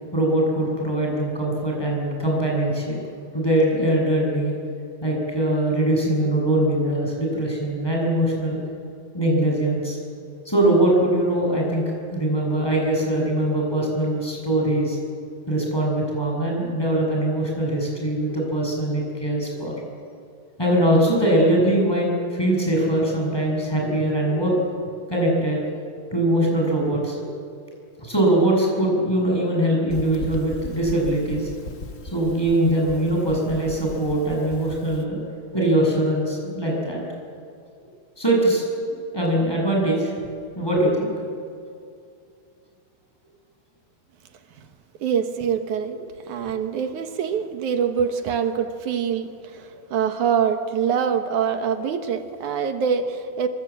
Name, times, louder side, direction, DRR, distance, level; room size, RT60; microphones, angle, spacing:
voice 1, 0.1-3.0 3.3-4.5 5.0-8.6 9.1-10.0 10.4-15.0 15.5-19.7 20.6-24.6 25.1-25.6 26.1-27.3 28.0-31.5 32.0-35.2 35.5-37.0 38.2-38.6 39.1-40.1 40.6-41.1, right 1 dB, 5° left, -2 dB, 7.4 m, -22 dB
sound 1, 29.9-35.0, left 2 dB, 45° left, 1.0 m, -38 dB
voice 2, 45.0-46.0 46.3-53.5, right 7 dB, 65° right, 7 dB, 2.5 m, -24 dB
25.5 x 23.5 x 8.7 m, 2.4 s
omnidirectional pair, 4.1 m